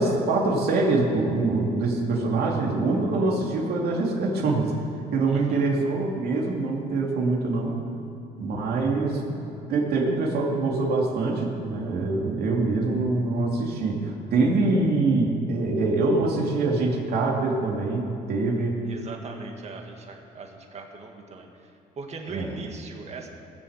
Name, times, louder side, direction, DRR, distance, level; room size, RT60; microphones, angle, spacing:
voice 1, 0.0-4.7 5.1-7.8 8.4-9.4 9.7-18.8 22.3-22.5, right 3 dB, 65° right, -1 dB, 2.7 m, -24 dB
voice 2, 5.3-5.7 18.9-23.3, right 4 dB, 40° right, 3 dB, 1.8 m, -40 dB
19.0 x 7.0 x 8.0 m, 2.6 s
cardioid pair, 110°, 17 cm